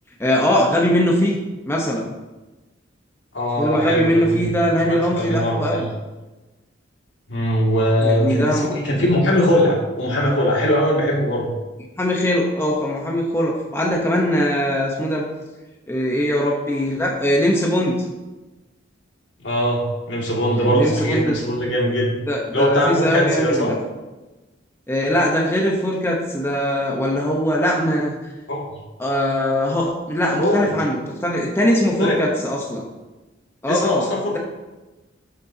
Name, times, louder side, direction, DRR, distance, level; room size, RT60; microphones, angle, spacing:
voice 1, 0.2-1.4 1.7-2.0 3.6-5.8 8.0-8.7 12.0-15.2 15.9-18.0 20.5-21.3 22.3-23.7 24.9-28.3 29.0-32.8 33.6-34.1, equal, 15° left, -1 dB, 0.9 m, -21 dB
voice 2, 3.3-5.9 7.3-11.5 19.4-22.1 22.5-23.7 28.5-28.6 30.4-30.7 32.0-32.2 33.7-34.4, equal, 70° left, -3 dB, 2.4 m, -21 dB
11.5 x 6.7 x 2.8 m, 1.1 s
head